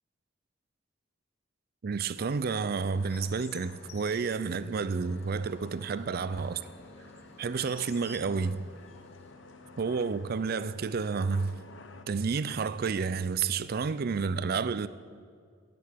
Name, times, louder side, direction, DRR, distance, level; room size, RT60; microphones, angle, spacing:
voice 1, 1.8-6.6 7.4-8.6 9.8-11.6 12.1-14.9, right 5 dB, 55° right, 0.4 m, -30 dB
sound 1, 2.2-12.0, left 3 dB, 85° left, 0.9 m, -52 dB
Chirp tweet, 2.7-9.3, left 5 dB, 35° left, 1.2 m, -55 dB
9.5 x 8.6 x 9.5 m
head